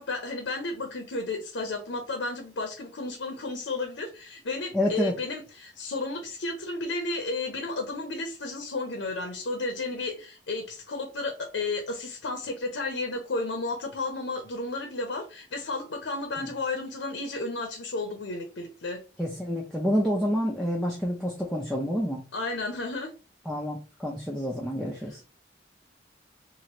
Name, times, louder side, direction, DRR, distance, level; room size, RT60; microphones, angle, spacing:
voice 1, 0.0-19.0 22.3-23.1, left 3 dB, 85° left, 4 dB, 0.6 m, -33 dB
voice 2, 4.7-5.1 16.4-16.5 19.2-22.3 23.5-25.2, equal, ahead, -3 dB, 0.5 m, -28 dB
3.0 x 2.5 x 2.9 m, 0.33 s
head